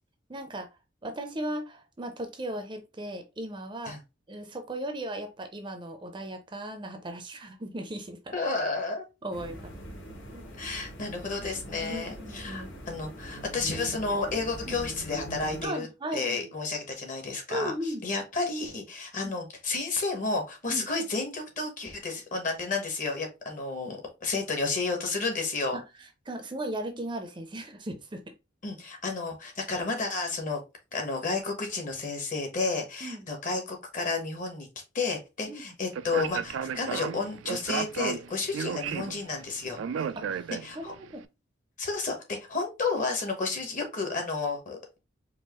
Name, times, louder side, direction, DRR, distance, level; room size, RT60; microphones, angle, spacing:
voice 1, 0.3-0.7 1.0-4.0 4.3-8.4 9.2-9.7 10.3-10.5 11.9-12.7 14.7-14.8 15.6-16.5 17.5-18.1 19.2-19.3 20.7-20.8 25.7-25.8 26.3-28.3 33.0-33.3 35.5-35.7 40.2-41.2, right 1 dB, 25° right, 0.5 m, -37 dB
voice 2, 8.3-9.0 10.6-15.9 16.1-25.8 28.6-30.6 30.9-34.7 34.9-39.8 40.5-40.9 41.8-45.0, left 3 dB, 40° left, 1.2 m, -31 dB
sound 1, 9.3-15.7, equal, 85° left, 2.3 m, -42 dB
Speech, 35.9-41.0, right 7 dB, 75° right, 0.3 m, -34 dB
4.6 x 2.5 x 3.0 m
head